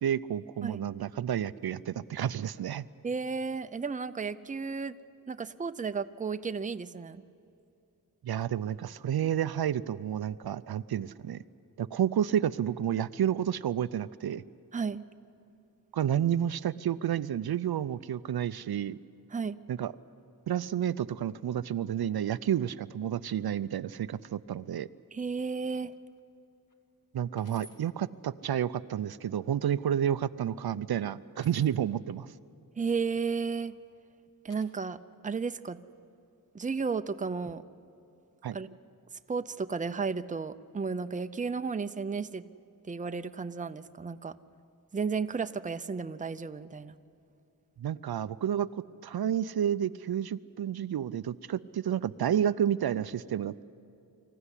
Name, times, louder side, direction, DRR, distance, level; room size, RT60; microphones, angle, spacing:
voice 1, 0.0-2.8 8.2-11.4 11.8-14.4 15.9-19.0 19.7-19.9 20.5-24.9 27.1-32.3 38.4-38.6 47.8-53.6, right 9 dB, 75° right, 15 dB, 0.5 m, -30 dB
voice 2, 3.0-5.0 5.3-7.2 14.7-15.0 19.3-19.6 25.1-25.9 32.8-33.7 34.4-35.0 35.2-35.8 36.5-37.6 38.5-38.7 39.3-42.4 42.9-44.3 44.9-46.9, right 5 dB, 20° right, 11 dB, 0.5 m, -33 dB
sound 1, 25.9-26.2 26.7-26.8 27.4-27.8 29.0-29.6 31.4-31.8 33.3-33.8 34.5-34.6, left 3 dB, 55° left, 2.2 m, -57 dB
25.5 x 14.5 x 9.8 m, 2.6 s
wide cardioid pair, 95°, 37 cm